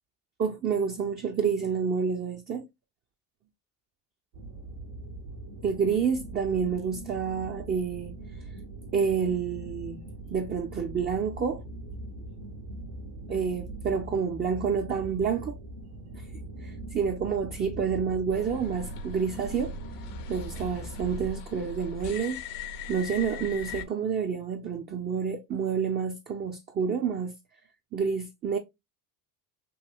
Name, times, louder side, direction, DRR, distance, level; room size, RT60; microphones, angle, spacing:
voice 1, 0.4-2.7 5.6-8.1 8.9-10.0 10.3-11.6 13.3-15.6 16.1-16.2 16.6-19.7 20.3-22.4 22.9-27.3 27.9-28.6, right 6 dB, 25° right, 0.3 m, -29 dB
sound 1, 4.3-21.3, right 2 dB, 85° right, 1.2 m, -41 dB
sound 2, 18.3-23.8, left 4 dB, 50° left, 0.5 m, -40 dB
3.1 x 2.6 x 2.2 m
supercardioid pair, 75°, 45 cm